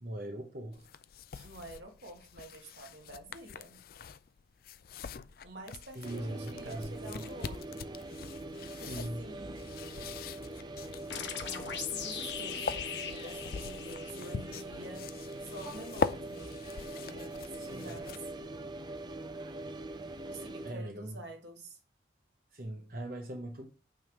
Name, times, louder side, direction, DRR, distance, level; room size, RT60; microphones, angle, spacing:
voice 1, 0.0-0.8 1.3-1.5 5.9-7.1 8.7-9.2 17.5-18.0 20.6-21.2 22.5-23.7, right 1 dB, 50° right, 0.9 m, -41 dB
sound 1, 0.7-18.5, left 5 dB, 50° left, 0.4 m, -42 dB
voice 2, 1.4-3.8 5.4-7.9 8.8-9.7 11.4-17.4 17.6-18.3 20.3-21.8, right 2 dB, 70° right, 2.0 m, -48 dB
sound 2, 6.0-20.7, right 1 dB, 25° right, 0.5 m, -43 dB
sound 3, 11.1-14.6, left 8 dB, 70° left, 1.3 m, -40 dB
9.1 x 3.6 x 6.1 m
head